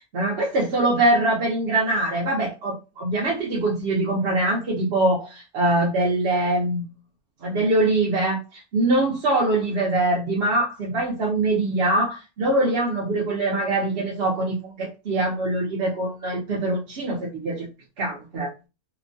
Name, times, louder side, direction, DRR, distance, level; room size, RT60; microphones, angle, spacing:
voice 1, 0.0-6.8 7.4-17.7 18.0-18.5, right 2 dB, 55° right, -3 dB, 0.8 m, -23 dB
2.9 x 2.1 x 2.6 m, 0.28 s
omnidirectional pair, 1.6 m